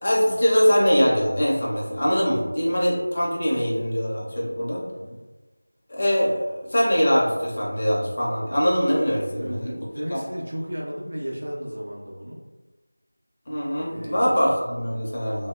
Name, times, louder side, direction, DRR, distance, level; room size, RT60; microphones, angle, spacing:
voice 1, 0.0-4.8 5.9-9.9 10.1-10.2 13.5-15.5, equal, 35° left, -4 dB, 0.5 m, -22 dB
voice 2, 9.3-12.4 13.8-14.5, equal, 65° right, -4 dB, 0.6 m, -34 dB
2.7 x 2.0 x 2.3 m, 1.2 s
figure-of-eight pair, 170°, 0 cm